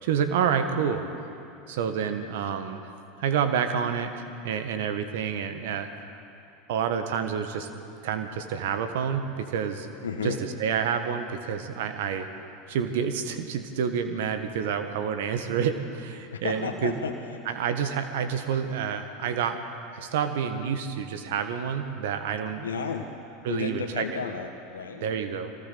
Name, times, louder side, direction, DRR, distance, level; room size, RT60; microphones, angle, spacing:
voice 1, 0.0-1.0 1.7-2.8 3.2-5.9 6.7-7.7 8.0-9.9 10.2-12.3 12.7-17.0 17.4-19.6 19.9-22.7 23.4-24.1 25.0-25.7, right 7 dB, 65° right, 8 dB, 1.5 m, -28 dB
voice 2, 10.0-10.4 16.3-17.1 22.6-23.1 23.5-25.1, left 5 dB, 80° left, 3 dB, 1.5 m, -32 dB
23.0 x 17.5 x 6.9 m, 2.7 s
hypercardioid pair, 80°, 0 cm